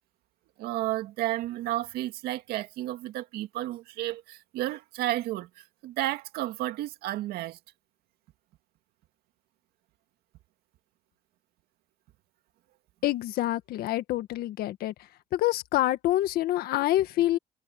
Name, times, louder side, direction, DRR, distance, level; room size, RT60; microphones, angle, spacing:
voice 1, 0.6-7.6, right 15 dB, 80° right, 2.2 m, -32 dB
voice 2, 13.0-14.9 15.3-17.4, left 15 dB, 75° left, 1.7 m, -26 dB
supercardioid pair, 75°, 16 cm